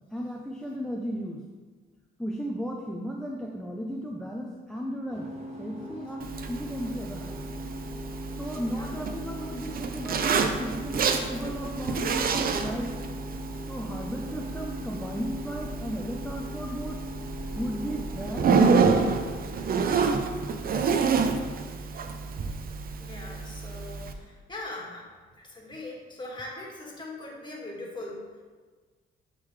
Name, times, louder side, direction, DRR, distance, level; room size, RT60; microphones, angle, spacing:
voice 1, 0.1-1.4 2.2-5.3 5.6-7.4 8.4-12.9 13.7-17.0 17.6-19.3, equal, 5° left, 0 dB, 0.6 m, -35 dB
sound 1, 5.1-23.4, equal, 30° right, 1.5 m, -41 dB
Zipper (clothing), 6.2-24.1, right 5 dB, 50° right, 0.6 m, -29 dB
voice 2, 23.0-28.4, left 2 dB, 25° left, -3 dB, 1.9 m, -41 dB
9.6 x 3.8 x 3.2 m, 1.4 s
cardioid pair, 90°, 20 cm